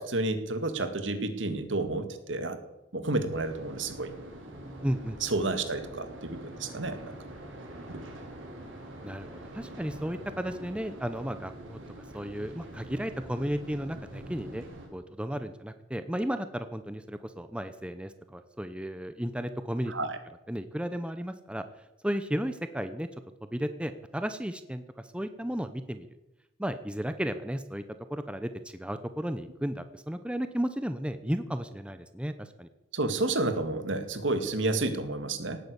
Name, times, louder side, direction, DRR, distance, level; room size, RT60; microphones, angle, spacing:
voice 1, 0.0-2.6 2.9-4.1 5.2-7.1 7.9-8.0 19.9-20.2 32.9-35.6, right 2 dB, 70° right, 8 dB, 2.1 m, -30 dB
sound 1, 3.3-14.9, right 1 dB, 85° right, 5.5 m, -45 dB
voice 2, 4.8-5.2 9.0-11.8 12.1-14.6 14.9-19.9 20.5-21.6 22.0-23.1 23.5-24.8 25.1-26.1 26.6-27.8 28.1-32.7, equal, 5° right, 10 dB, 0.8 m, -34 dB
18.0 x 9.8 x 8.2 m, 0.95 s
head